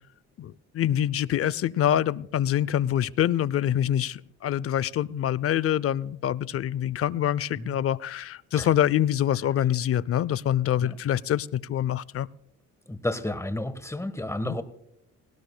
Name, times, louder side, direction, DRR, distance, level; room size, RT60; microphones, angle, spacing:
voice 1, 0.4-12.3 14.4-14.6, left 11 dB, 50° left, 22 dB, 0.5 m, -25 dB
voice 2, 12.9-14.6, left 1 dB, 10° left, 12 dB, 1.2 m, -31 dB
19.0 x 18.0 x 2.2 m, 0.78 s
cardioid pair, 90°, 30 cm